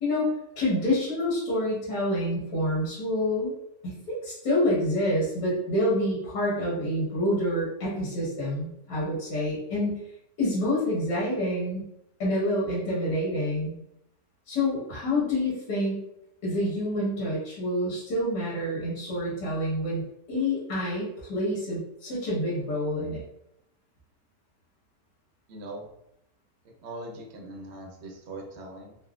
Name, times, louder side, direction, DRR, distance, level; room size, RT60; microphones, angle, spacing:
voice 1, 0.6-3.5 3.8-10.0 10.4-11.9 12.2-13.8 14.5-16.0 16.4-23.2, left 1 dB, 85° left, -7 dB, 1.8 m, -27 dB
voice 2, 25.5-25.9 26.8-29.0, right 2 dB, 65° right, 0 dB, 0.7 m, -40 dB
3.9 x 2.0 x 2.3 m, 0.79 s
omnidirectional pair, 1.8 m